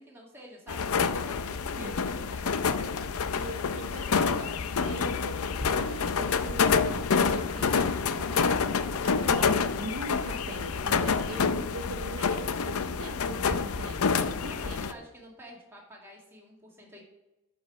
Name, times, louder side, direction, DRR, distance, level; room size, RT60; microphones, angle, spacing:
voice 1, 0.0-2.8 10.8-11.2 12.4-12.7 14.5-17.0, right 1 dB, 10° right, -3 dB, 2.1 m, -49 dB
sound 1, 0.7-14.9, left 5 dB, 80° left, 0.5 m, -28 dB
voice 2, 3.4-14.8, right 2 dB, 80° right, 6 dB, 0.9 m, -42 dB
sound 2, 5.1-13.5, equal, 35° right, 2.1 m, -49 dB
9.1 x 5.2 x 6.7 m, 1.0 s
head